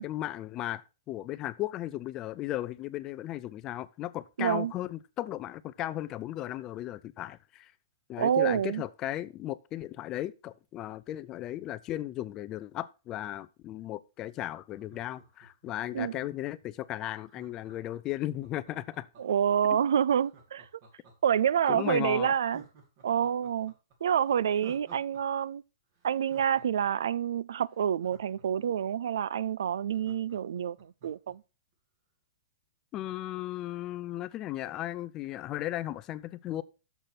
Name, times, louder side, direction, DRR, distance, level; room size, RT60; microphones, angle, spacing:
voice 1, 0.0-7.7 8.1-19.1 19.7-19.8 21.7-22.3 32.9-36.6, left 14 dB, 25° left, 0.4 m, -36 dB
voice 2, 4.4-4.7 8.2-8.8 15.9-16.1 19.2-20.7 21.2-22.6 23.0-23.7 24.0-25.6 26.0-31.4, right 8 dB, 80° right, 0.4 m, -27 dB
Laughter, 14.7-16.4 17.3-19.5 20.2-21.6 22.0-22.1 22.4-25.2 25.5-25.6 25.9-28.9 29.3-29.4 29.6-31.3 31.7-31.8, right 4 dB, 40° right, 2.5 m, -56 dB
6.8 x 6.5 x 5.8 m
hypercardioid pair, 160°, 2 cm